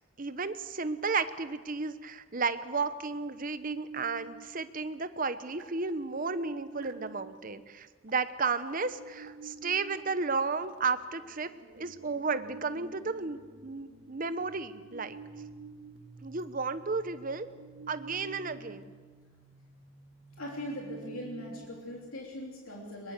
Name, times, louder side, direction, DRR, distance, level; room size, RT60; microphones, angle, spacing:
voice 1, 0.2-11.5 11.7-15.2 16.2-17.5 17.9-18.9, right 4 dB, 40° right, 12 dB, 0.9 m, -33 dB
sound 1, 2.8-2.9 3.2-4.5 5.6-7.4 8.1-8.3 8.6-21.7, right 4 dB, 65° right, 2.3 m, -49 dB
voice 2, 20.4-23.1, left 1 dB, 90° left, -2 dB, 3.4 m, -40 dB
22.5 x 22.0 x 6.8 m, 1.5 s
head